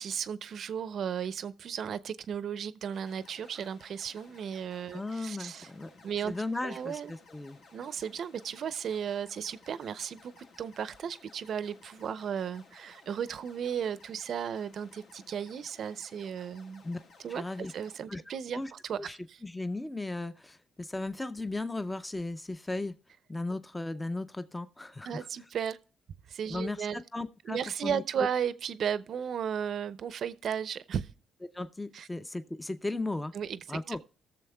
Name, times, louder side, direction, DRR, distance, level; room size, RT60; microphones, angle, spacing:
voice 1, 0.0-5.7 6.0-6.3 6.6-7.1 7.7-16.8 17.2-17.4 17.7-19.4 25.1-25.8 26.3-27.0 27.5-31.1 31.9-32.1 33.3-33.6 33.9-34.0, right 8 dB, 60° right, 0.5 m, -35 dB
sound 1, 2.9-18.0, left 3 dB, 70° left, 1.7 m, -58 dB
voice 2, 4.9-5.9 6.3-7.6 16.8-17.0 17.3-17.7 18.1-18.7 19.0-23.0 23.3-25.3 26.5-28.0 31.5-33.3 33.7-34.0, left 2 dB, 15° left, 0.5 m, -36 dB
19.0 x 7.0 x 2.2 m
cardioid pair, 90°, 0 cm